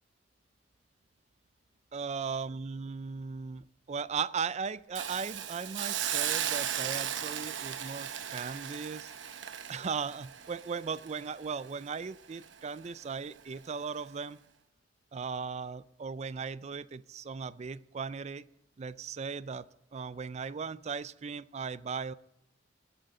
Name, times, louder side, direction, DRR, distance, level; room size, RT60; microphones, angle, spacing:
voice 1, 1.9-9.1 9.7-14.4 15.1-18.5 18.8-19.7 19.9-22.1, right 5 dB, 35° right, 18 dB, 0.4 m, -37 dB
Hiss, 5.0-12.0 12.4-12.5, right 9 dB, 80° right, 0.9 m, -36 dB
20.5 x 11.5 x 3.8 m, 0.83 s
head